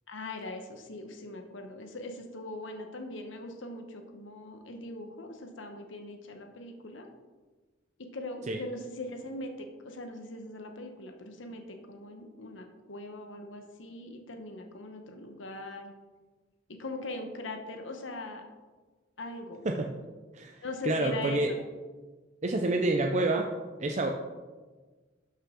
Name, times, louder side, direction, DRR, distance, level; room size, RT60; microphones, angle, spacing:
voice 1, 0.1-7.1 8.0-15.9 16.7-18.4 19.2-19.7 20.6-21.4, left 2 dB, 80° left, 4 dB, 1.0 m, -41 dB
voice 2, 19.6-20.0 20.3-21.5 22.4-23.5 23.8-24.2, right 2 dB, 40° right, 3 dB, 0.5 m, -28 dB
12.5 x 5.6 x 3.7 m, 1.3 s
head